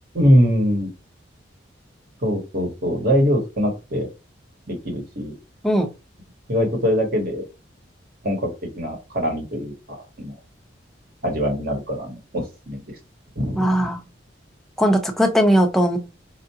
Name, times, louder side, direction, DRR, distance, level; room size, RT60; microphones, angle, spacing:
voice 1, 0.1-0.9 2.2-4.1 4.7-5.3 6.5-7.5 8.2-9.7 10.2-10.3 11.2-12.8 13.4-13.9, equal, 50° right, 2 dB, 1.2 m, -22 dB
voice 2, 13.6-14.0 14.8-16.0, equal, ahead, 4 dB, 0.5 m, -18 dB
4.5 x 2.4 x 2.8 m, 0.28 s
head